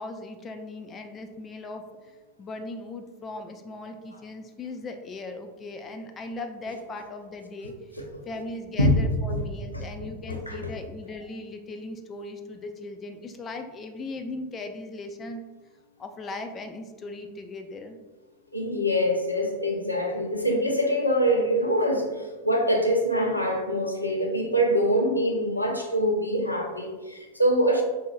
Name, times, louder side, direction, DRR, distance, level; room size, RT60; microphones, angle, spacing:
voice 1, 0.0-7.7 8.3-15.4 16.0-18.0 20.4-20.5, left 2 dB, 25° left, 5 dB, 0.4 m, -38 dB
voice 2, 9.7-10.7 18.5-27.8, equal, 85° left, 2 dB, 0.6 m, -24 dB
5.3 x 3.6 x 2.4 m, 1.3 s
figure-of-eight pair, 90°, 0 cm